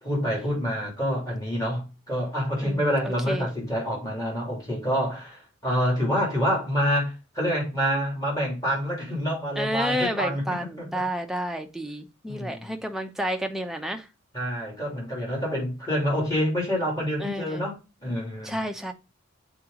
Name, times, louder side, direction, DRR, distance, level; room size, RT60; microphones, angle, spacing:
voice 1, 0.0-10.4 10.8-10.9 12.2-12.7 14.3-18.6, equal, 20° left, 3.4 m, -27 dB
voice 2, 2.6-3.5 9.6-14.1 17.2-17.6 18.4-18.9, equal, ahead, 0.7 m, -30 dB
7.4 x 3.9 x 3.6 m
head